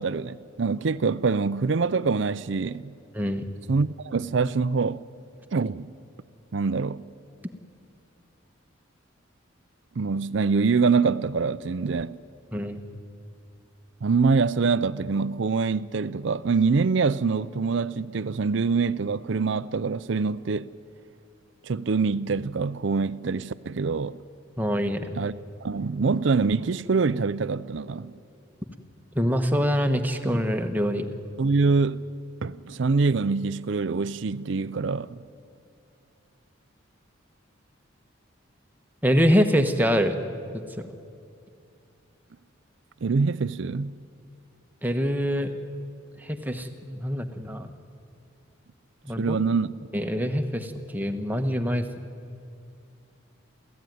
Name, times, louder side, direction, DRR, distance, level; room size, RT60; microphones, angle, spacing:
voice 1, 0.0-2.9 3.7-5.0 5.5-5.9 6.5-7.0 10.0-12.2 14.0-20.7 21.6-24.2 25.2-25.3 25.6-28.1 31.4-32.0 32.4-35.2 43.0-43.9 49.2-49.7, right 4 dB, 60° right, 0.5 m, -25 dB
voice 2, 3.1-3.5 12.5-12.8 24.6-25.1 29.1-31.1 39.0-40.2 40.8-40.9 44.8-45.5 46.2-47.7 49.0-49.4 49.9-51.9, equal, 10° right, 1.1 m, -25 dB
28.5 x 14.5 x 9.4 m
head